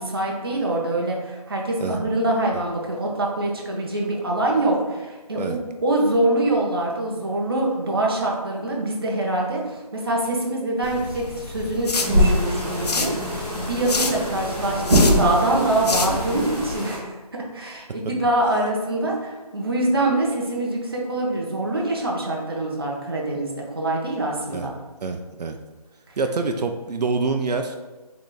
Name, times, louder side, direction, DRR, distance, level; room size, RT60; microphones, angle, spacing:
voice 1, 0.0-24.7, right 1 dB, 35° right, -2 dB, 0.6 m, -24 dB
sound 1, 10.8-16.7, left 3 dB, 80° left, 0.5 m, -29 dB
sound 2, 11.9-17.0, equal, 5° left, 0.6 m, -23 dB
voice 2, 25.0-25.6 26.2-27.8, right 4 dB, 85° right, 5 dB, 0.4 m, -26 dB
3.8 x 2.4 x 3.8 m, 1.2 s
figure-of-eight pair, 175°, 20 cm